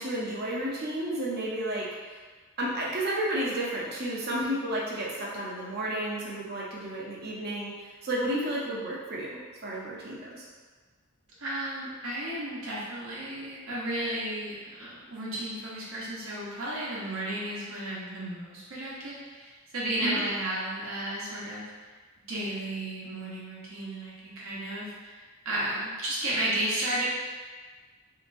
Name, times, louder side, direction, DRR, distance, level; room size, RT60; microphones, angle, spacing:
voice 1, 0.0-2.2 2.6-10.5 20.0-20.2, right 1 dB, 50° right, -5 dB, 0.7 m, -32 dB
voice 2, 11.4-21.7 22.2-25.2 25.4-27.1, right 1 dB, 90° right, -7 dB, 1.0 m, -33 dB
3.2 x 2.8 x 2.6 m, 1.4 s
head